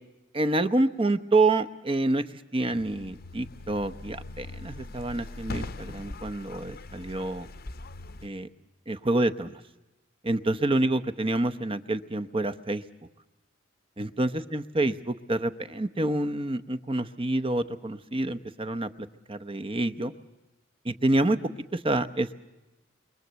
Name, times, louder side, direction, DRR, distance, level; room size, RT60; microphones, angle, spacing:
voice 1, 0.3-2.2 2.5-7.5 8.2-8.5 8.9-9.5 10.2-12.8 14.0-20.1 20.8-21.4 21.7-22.3, right 2 dB, 25° right, 12 dB, 0.9 m, -27 dB
sound 1, 2.7-8.3, left 2 dB, 50° left, 0.9 m, -41 dB
28.5 x 23.5 x 8.1 m, 1.1 s
head